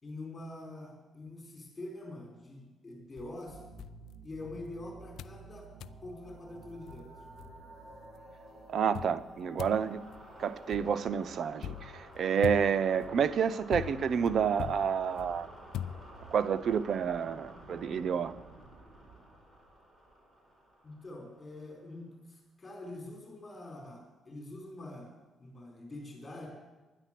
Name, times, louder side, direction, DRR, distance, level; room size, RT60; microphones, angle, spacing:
voice 1, 0.0-3.6 4.2-5.7 6.0-7.1 20.8-25.1 25.4-26.5, left 2 dB, 25° left, 0 dB, 4.5 m, -45 dB
sound 1, 3.2-4.7 5.2-5.4 5.8-6.0 6.6-6.7 6.9-8.0 8.9-16.5, left 10 dB, 80° left, 0.3 m, -43 dB
sound 2, 3.5-21.9, right 2 dB, 25° right, 4.2 m, -52 dB
voice 2, 8.7-10.0 10.4-15.5 16.3-18.3, right 7 dB, 60° right, 13 dB, 0.6 m, -29 dB
11.0 x 10.0 x 7.6 m, 1.1 s
cardioid pair, 90°, 0 cm